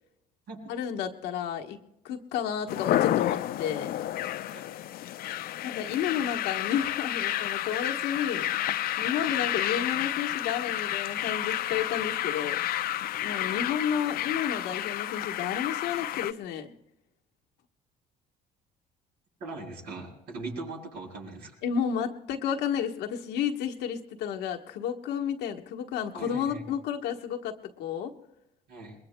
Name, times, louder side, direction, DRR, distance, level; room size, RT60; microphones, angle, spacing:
voice 1, 0.7-1.8 2.0-3.9 5.6-12.6 13.2-16.7 21.6-28.1, left 8 dB, 85° left, 3 dB, 1.2 m, -31 dB
sound 1, 2.7-16.3, left 13 dB, 65° left, 0.5 m, -30 dB
voice 2, 19.4-21.5 26.1-26.6 28.7-29.0, right 3 dB, 70° right, -2 dB, 7.9 m, -40 dB
27.5 x 22.0 x 2.2 m, 0.84 s
cardioid pair, 110°, 17 cm